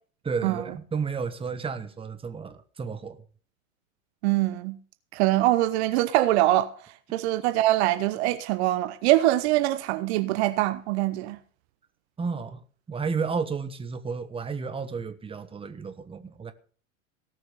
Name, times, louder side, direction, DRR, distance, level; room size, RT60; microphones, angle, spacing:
voice 1, 0.2-3.2 12.2-12.6 12.9-16.5, right 5 dB, 15° right, 1.4 m, -32 dB
voice 2, 4.2-4.8 5.1-6.7 7.1-11.4, right 16 dB, 50° right, 1.0 m, -23 dB
17.5 x 6.2 x 6.3 m
hypercardioid pair, 95°, 41 cm